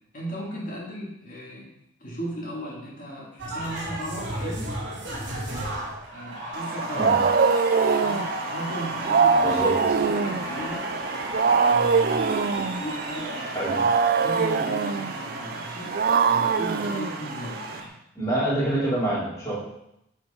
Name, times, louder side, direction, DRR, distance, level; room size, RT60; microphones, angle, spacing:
voice 1, 0.1-1.7 2.0-4.7 6.1-7.2 7.8-9.7 9.9-10.9 11.5-15.9 16.2-18.0, equal, 45° left, -5 dB, 2.6 m, -36 dB
sound 1, 3.4-17.9, right 1 dB, 65° right, 2.1 m, -34 dB
Wild animals, 6.6-17.8, right 5 dB, 45° right, 0.3 m, -24 dB
voice 2, 9.4-9.7 13.5-13.7 18.1-19.5, right 1 dB, 15° left, -8 dB, 3.3 m, -26 dB
9.9 x 5.6 x 3.9 m, 0.81 s
head